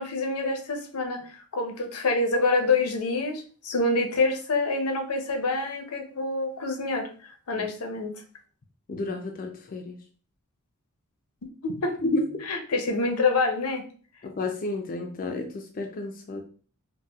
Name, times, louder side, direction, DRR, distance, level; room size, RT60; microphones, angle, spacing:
voice 1, 0.0-8.1 11.6-12.0 12.5-13.8, left 3 dB, 85° left, 5 dB, 0.6 m, -27 dB
voice 2, 8.9-10.0 12.0-12.5 14.2-16.4, left 2 dB, 40° left, 3 dB, 0.4 m, -31 dB
4.0 x 2.1 x 2.3 m, 0.41 s
head